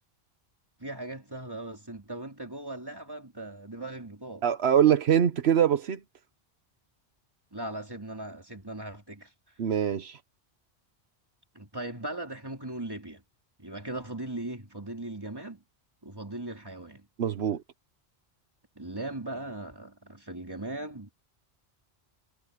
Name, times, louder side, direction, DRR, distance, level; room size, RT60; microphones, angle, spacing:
voice 1, 0.8-4.4 7.5-9.3 11.5-13.2 13.6-15.6 16.0-17.1 18.8-21.1, right 2 dB, 20° right, 3.5 m, -39 dB
voice 2, 4.4-6.0 9.6-10.2 17.2-17.6, right 9 dB, 75° right, 1.1 m, -23 dB
omnidirectional pair, 1.1 m